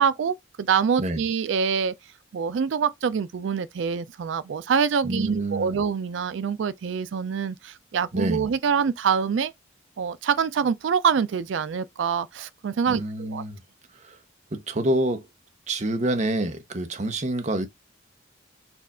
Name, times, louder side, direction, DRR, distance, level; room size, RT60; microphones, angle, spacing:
voice 1, 0.0-1.9 2.3-9.5 10.0-13.4, right 6 dB, 65° right, 0.4 m, -25 dB
voice 2, 5.0-5.7 8.1-8.5 12.9-13.6 13.9-14.2 14.5-15.3 15.7-17.7, right 1 dB, 35° right, 0.7 m, -27 dB
4.4 x 2.4 x 4.1 m
head